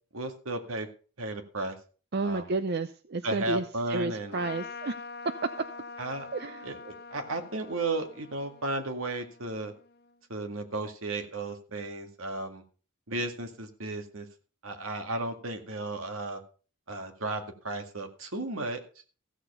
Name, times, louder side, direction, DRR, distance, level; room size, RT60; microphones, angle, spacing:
voice 1, 0.1-0.9 1.2-1.8 2.2-2.5 3.2-4.4 6.0-6.3 6.6-9.7 10.3-12.6 13.1-14.3 14.6-16.4 16.9-18.8, right 2 dB, 75° right, 6 dB, 1.9 m, -34 dB
voice 2, 2.1-3.6 3.9-5.0 6.3-6.7, right 3 dB, 50° right, 10 dB, 0.5 m, -31 dB
Trumpet, 4.3-10.1, left 4 dB, 50° left, 0.7 m, -45 dB
15.0 x 6.9 x 5.3 m, 0.38 s
head